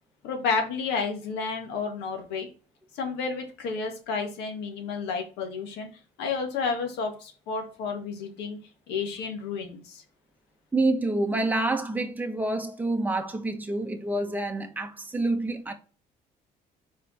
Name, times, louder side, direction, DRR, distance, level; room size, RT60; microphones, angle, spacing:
voice 1, 0.2-2.5 2.9-5.9 6.2-8.6 8.9-10.0, left 5 dB, 90° left, 1.9 m, -31 dB
voice 2, 10.7-15.7, right 2 dB, 10° right, 1.2 m, -27 dB
5.0 x 4.9 x 4.3 m
cardioid pair, 110°, 17 cm